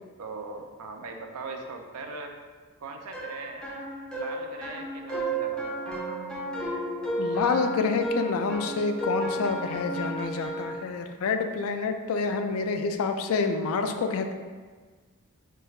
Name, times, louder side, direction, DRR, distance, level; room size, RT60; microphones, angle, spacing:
voice 1, 0.2-2.3 2.8-3.7 4.1-5.9, right 3 dB, 80° right, 4 dB, 0.4 m, -40 dB
sound 1, 3.1-10.8, right 1 dB, 5° left, 0.5 m, -33 dB
voice 2, 7.2-14.3, left 4 dB, 65° left, 6 dB, 0.3 m, -28 dB
4.4 x 2.3 x 3.1 m, 1.5 s
head